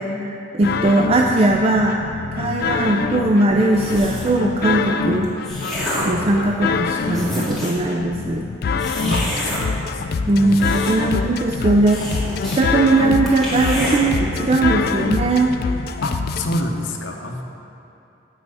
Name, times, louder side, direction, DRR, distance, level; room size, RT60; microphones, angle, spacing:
voice 1, 0.0-2.0 2.3-5.3 6.1-8.5 9.0-9.3 10.3-12.0 12.5-15.5, right 2 dB, 30° right, 1 dB, 0.3 m, -19 dB
sound 1, 0.6-16.6, left 4 dB, 50° left, 0.3 m, -25 dB
sound 2, 3.7-4.4 5.1-6.2 6.8-6.9 7.1-7.9 8.8-9.6 10.3-11.2 11.5-11.6 11.9-12.6 12.9-13.0 13.3-14.0, left 1 dB, ahead, 1.9 m, -28 dB
voice 2, 9.1-9.7 16.0-17.4, left 1 dB, 70° left, 2 dB, 0.8 m, -27 dB
8.6 x 6.1 x 5.4 m, 2.8 s
head